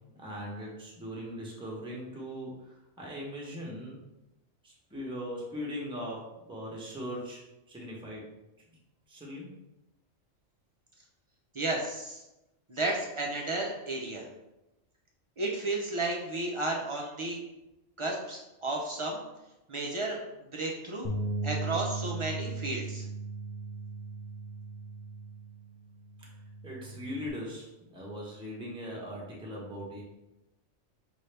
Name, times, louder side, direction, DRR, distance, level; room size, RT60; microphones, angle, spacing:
voice 1, 0.2-2.5 3.0-4.0 4.6-7.4 7.7-8.2 9.1-9.5 26.6-30.0, equal, 5° right, -3 dB, 0.8 m, -39 dB
voice 2, 11.5-12.2 12.7-14.3 15.4-17.4 18.0-19.2 19.7-20.2 20.5-21.1 21.4-23.1, right 2 dB, 40° right, -2 dB, 0.4 m, -33 dB
Bass guitar, 21.0-27.3, right 3 dB, 60° left, 0.3 m, -37 dB
5.5 x 2.7 x 3.3 m, 0.94 s
omnidirectional pair, 1.4 m